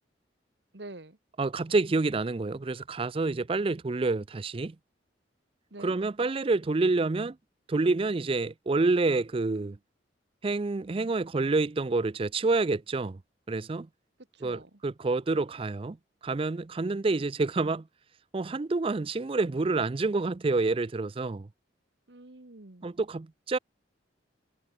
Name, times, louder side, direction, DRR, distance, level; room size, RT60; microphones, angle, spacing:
voice 1, 0.7-1.2 5.7-6.0 14.3-14.8 22.1-22.9, right 2 dB, 70° right, 1.7 m, -46 dB
voice 2, 1.4-4.8 5.8-7.4 7.7-9.8 10.4-13.2 13.5-13.9 14.4-16.0 16.2-17.9 18.3-21.5 22.8-23.6, right 3 dB, 30° right, 0.4 m, -28 dB
head